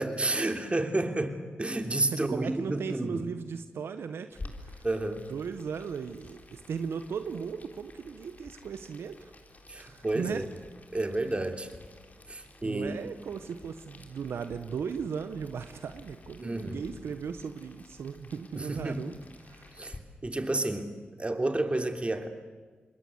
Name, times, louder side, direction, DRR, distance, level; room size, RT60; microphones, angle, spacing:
voice 1, 0.0-3.3 4.8-5.2 9.7-10.4 10.9-11.7 12.3-13.0 16.4-16.9 18.5-19.0 19.8-22.3, right 2 dB, 30° right, 6 dB, 3.3 m, -31 dB
voice 2, 2.1-4.8 5.3-9.3 9.7-10.5 12.6-19.1 19.4-19.9, right 6 dB, 80° right, 10 dB, 1.1 m, -37 dB
Boiling, 4.3-20.0, left 2 dB, 40° left, 4.0 m, -51 dB
27.0 x 21.5 x 8.0 m, 1.5 s
cardioid pair, 45°, 4 cm